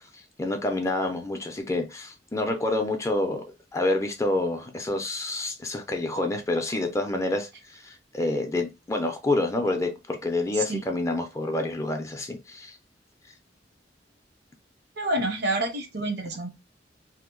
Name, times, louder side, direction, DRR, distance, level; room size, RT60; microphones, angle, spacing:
voice 1, 0.4-3.4 3.7-12.7, left 2 dB, 15° left, 0.5 m, -28 dB
voice 2, 15.0-16.5, right 2 dB, 65° right, 0.7 m, -28 dB
2.8 x 2.1 x 3.7 m
head